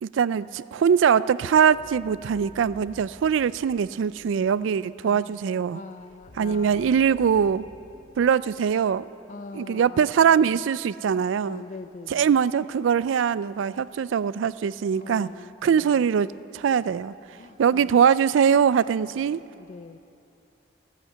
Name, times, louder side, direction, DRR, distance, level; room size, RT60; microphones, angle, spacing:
voice 1, 0.0-5.8 6.4-7.6 8.2-9.1 9.5-11.6 12.1-15.3 15.6-17.1 17.6-19.4, right 7 dB, 80° right, 18 dB, 0.3 m, -22 dB
sound 1, 1.6-4.7 5.9-9.2, left 2 dB, 60° left, 0.8 m, -51 dB
voice 2, 5.0-5.4 5.7-7.0 9.3-10.6 11.4-12.3 14.9-16.0 17.4-18.0 19.4-20.0, left 3 dB, 40° left, 9 dB, 0.3 m, -43 dB
13.5 x 11.0 x 7.9 m, 2.8 s
head